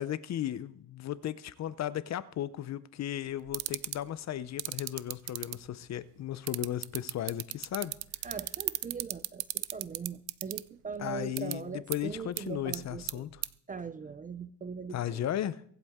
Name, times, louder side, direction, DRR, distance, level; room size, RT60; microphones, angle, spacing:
voice 1, 0.0-7.9 11.0-13.4 14.9-15.6, left 11 dB, 40° left, 0.6 m, -35 dB
sound 1, 3.5-4.0 4.6-5.5 6.5-10.6 11.4-11.5 11.9-12.0 12.4-12.5 12.7-13.1 13.4-13.5, right 22 dB, 80° right, 0.7 m, -32 dB
voice 2, 8.2-13.3 13.7-15.2, right 5 dB, 20° right, 0.5 m, -41 dB
23.5 x 8.2 x 3.6 m
cardioid pair, 130°, 43 cm